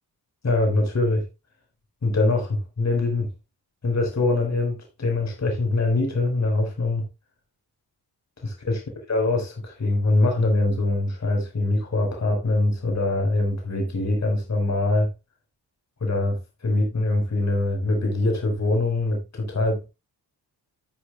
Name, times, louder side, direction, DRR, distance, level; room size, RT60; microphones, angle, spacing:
voice 1, 0.4-1.2 2.0-3.3 3.8-7.1 8.4-8.8 9.1-15.1 16.0-19.8, left 2 dB, 40° left, 5.2 m, -23 dB
14.0 x 8.4 x 2.4 m
wide cardioid pair, 130°, 41 cm